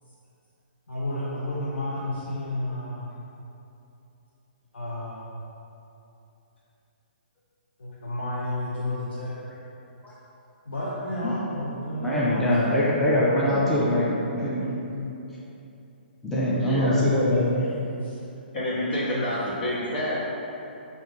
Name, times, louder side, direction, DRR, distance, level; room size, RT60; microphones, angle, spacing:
voice 1, 0.9-3.1 4.7-5.2 7.8-9.4 10.7-12.5 12.7-13.0 18.0-18.2 19.0-19.3, left 1 dB, 90° left, -8 dB, 0.7 m, -31 dB
voice 2, 12.0-14.9 16.2-17.7, left 1 dB, 5° left, -8 dB, 0.5 m, -23 dB
voice 3, 16.6-17.0 18.5-20.1, left 1 dB, 65° left, -10 dB, 1.4 m, -28 dB
6.2 x 2.7 x 2.4 m, 2.9 s
hypercardioid pair, 135°, 6 cm